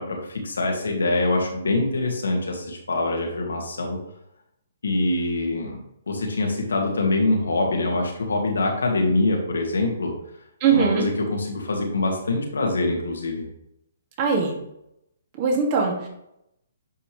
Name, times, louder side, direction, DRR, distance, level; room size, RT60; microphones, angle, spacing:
voice 1, 0.0-4.0 4.8-10.1 10.7-13.5, left 2 dB, 85° left, 1 dB, 2.2 m, -24 dB
voice 2, 10.6-11.1 14.2-14.5 15.4-16.1, right 5 dB, 40° right, -1 dB, 2.5 m, -21 dB
9.3 x 5.7 x 3.4 m, 0.80 s
hypercardioid pair, 140°, 0 cm